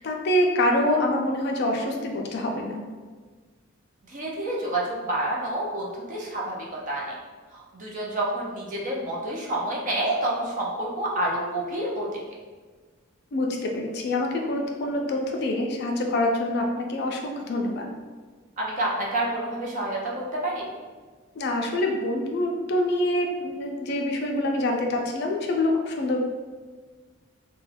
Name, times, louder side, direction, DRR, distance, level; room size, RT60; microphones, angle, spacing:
voice 1, 0.0-2.8 13.3-17.9 21.3-26.2, left 1 dB, 50° left, 1 dB, 0.4 m, -26 dB
voice 2, 4.1-7.2 7.5-12.2 18.6-20.7, right 1 dB, 35° right, -3 dB, 0.5 m, -28 dB
2.3 x 2.2 x 3.2 m, 1.4 s
head